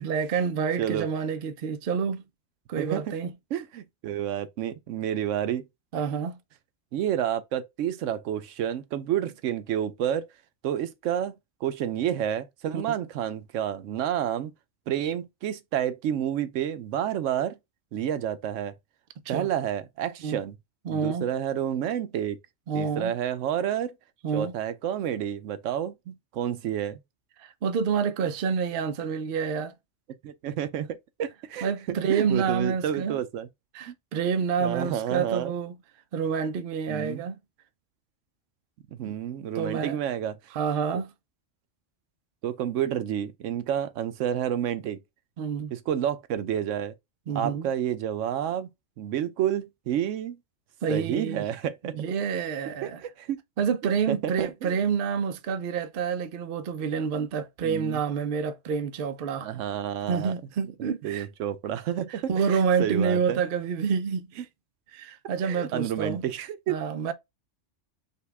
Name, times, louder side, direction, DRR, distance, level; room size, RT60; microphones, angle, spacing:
voice 1, 0.0-2.2 2.7-3.3 5.9-6.4 12.7-12.8 19.3-19.5 20.2-20.4 20.9-21.3 22.7-23.1 24.2-24.5 27.4-29.7 31.6-33.2 33.7-35.8 36.1-37.4 39.0-39.1 39.5-40.0 40.5-41.1 45.4-45.7 47.3-47.7 50.8-51.4 51.9-53.0 53.6-59.5 60.1-61.3 62.1-64.5 64.9-66.2 66.7-67.1, right 6 dB, 55° right, 0.7 m, -28 dB
voice 2, 2.8-3.1 3.5-5.6 6.9-10.3 10.6-11.3 11.6-14.5 14.9-17.6 17.9-18.7 19.3-20.6 20.9-22.4 22.7-23.9 24.3-27.0 30.2-30.9 31.2-33.5 33.9-34.0 34.6-35.5 36.9-37.2 39.0-40.4 40.9-41.0 42.4-45.0 45.7-46.9 47.3-48.7 49.0-50.4 50.9-51.9 52.8-53.4 54.1-54.7 57.6-58.0 59.4-60.3 61.0-62.2 62.5-63.4 65.4-66.7, right 10 dB, 80° right, 0.9 m, -29 dB
5.5 x 2.3 x 3.3 m
omnidirectional pair, 1.3 m